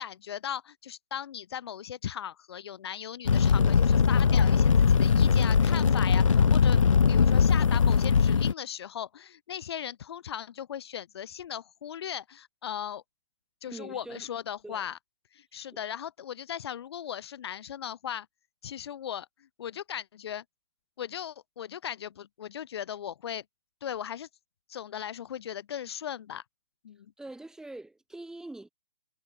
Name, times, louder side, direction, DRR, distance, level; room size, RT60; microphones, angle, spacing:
voice 1, 0.0-6.8 7.1-13.0 13.6-15.0 15.3-18.3 18.6-20.4 21.0-23.4 23.8-24.3 24.7-26.4 26.8-27.1, left 9 dB, 50° left, 2.5 m, -38 dB
Fire, 3.3-8.5, left 6 dB, 75° left, 0.6 m, -21 dB
voice 2, 13.7-14.3 14.6-14.9 15.7-15.8 27.2-28.7, right 2 dB, 5° right, 7.3 m, -43 dB
figure-of-eight pair, 125°, 17 cm